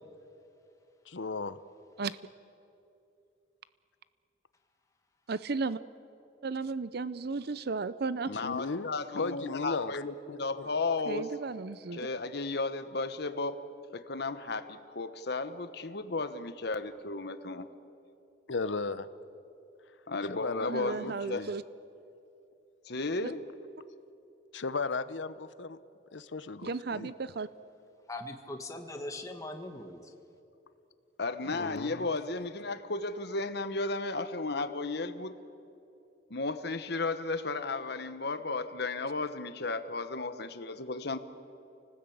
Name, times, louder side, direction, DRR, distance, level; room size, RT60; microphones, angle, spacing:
voice 1, 1.1-1.6 8.4-10.0 10.3-10.7 18.5-19.1 20.3-21.5 24.5-25.8 26.1-27.1 31.5-32.1, left 3 dB, 85° left, 14 dB, 0.9 m, -36 dB
voice 2, 5.3-5.8 6.4-8.3 11.1-12.1 20.7-21.6 26.6-27.5, right 4 dB, 60° right, 15 dB, 0.6 m, -34 dB
voice 3, 8.3-11.4 11.9-13.6 13.9-17.7 20.1-21.5 22.8-23.4 31.2-35.4 36.3-41.2, left 3 dB, 60° left, 10 dB, 1.2 m, -34 dB
voice 4, 28.1-30.1, left 1 dB, 20° left, 4 dB, 1.6 m, -40 dB
29.5 x 19.0 x 8.7 m, 2.8 s
head